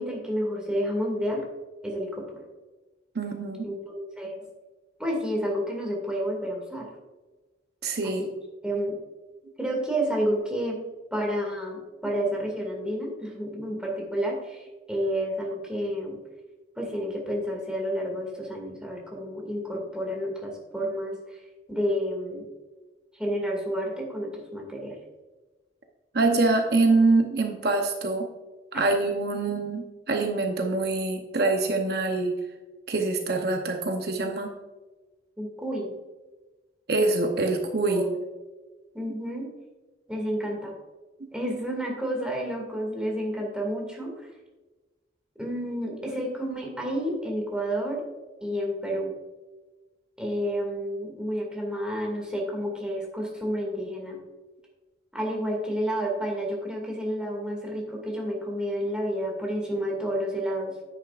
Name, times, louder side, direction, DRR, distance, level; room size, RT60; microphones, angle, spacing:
voice 1, 0.0-1.4 1.8-2.3 3.6-4.4 5.0-6.9 8.0-8.3 8.6-9.0 9.6-10.8 11.1-16.2 16.8-21.2 21.7-22.4 23.1-25.0 35.4-35.9 37.9-38.2 38.9-39.5 40.1-40.7 41.3-44.3 45.4-48.0 48.4-49.1 50.2-54.2 55.1-60.7, equal, 5° right, -1 dB, 2.2 m, -30 dB
voice 2, 3.1-3.7 7.8-8.2 26.1-28.3 28.7-32.3 32.9-34.5 36.9-38.1, right 3 dB, 60° right, 3 dB, 0.8 m, -25 dB
10.0 x 9.1 x 2.5 m, 1.2 s
head